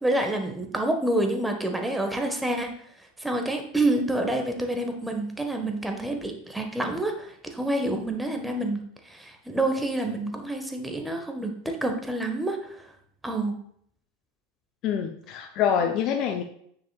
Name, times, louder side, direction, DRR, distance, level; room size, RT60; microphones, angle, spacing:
voice 1, 0.0-2.7 3.2-8.8 9.0-11.5 11.8-12.9 13.2-13.6 15.8-15.9, right 1 dB, 5° right, 4 dB, 1.4 m, -28 dB
voice 2, 14.8-16.4, left 8 dB, 45° left, 5 dB, 0.7 m, -25 dB
9.3 x 6.9 x 2.4 m, 0.66 s
figure-of-eight pair, 85°, 0 cm